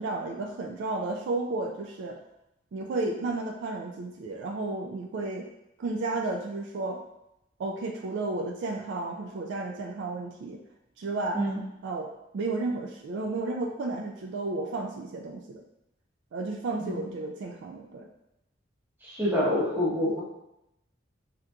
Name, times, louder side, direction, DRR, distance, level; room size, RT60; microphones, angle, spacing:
voice 1, 0.0-2.2 2.7-5.5 5.8-7.0 7.6-10.6 11.0-11.5 11.8-15.6 16.3-18.1, right 3 dB, 60° right, 3 dB, 0.3 m, -32 dB
voice 2, 16.8-17.1 19.0-20.2, left 1 dB, 10° right, -6 dB, 0.8 m, -27 dB
3.6 x 2.8 x 2.2 m, 0.86 s
head